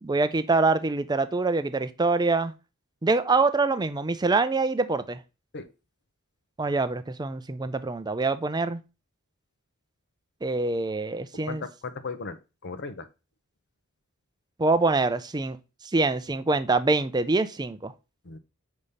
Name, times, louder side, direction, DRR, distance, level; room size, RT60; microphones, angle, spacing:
voice 1, 0.0-2.5 3.0-5.2 6.6-8.8 10.4-11.6 14.6-15.6 15.9-17.9, right 3 dB, 20° right, 0.5 m, -25 dB
voice 2, 11.3-13.1 18.2-18.4, left 4 dB, 50° left, 0.8 m, -37 dB
5.3 x 5.0 x 5.6 m
head